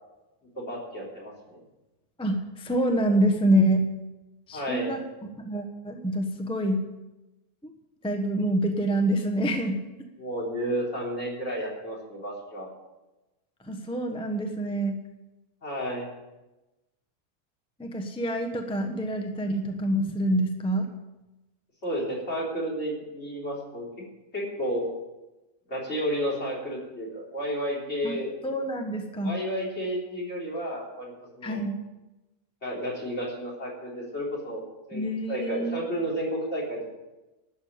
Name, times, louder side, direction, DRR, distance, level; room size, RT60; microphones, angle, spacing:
voice 1, 0.5-1.6 4.5-4.9 10.2-12.7 15.6-16.1 21.8-23.9 24.3-24.9 25.7-28.3 29.2-31.6 32.6-34.6 34.9-35.0 35.3-36.9, equal, 40° left, -4 dB, 4.0 m, -32 dB
voice 2, 2.2-3.9 4.5-6.8 7.6-7.7 8.0-9.8 13.6-15.0 17.8-20.9 28.0-28.2 28.4-29.3 31.4-31.8 34.9-35.8, right 1 dB, 5° left, 4 dB, 0.9 m, -26 dB
12.0 x 7.2 x 8.7 m, 1.0 s
omnidirectional pair, 1.7 m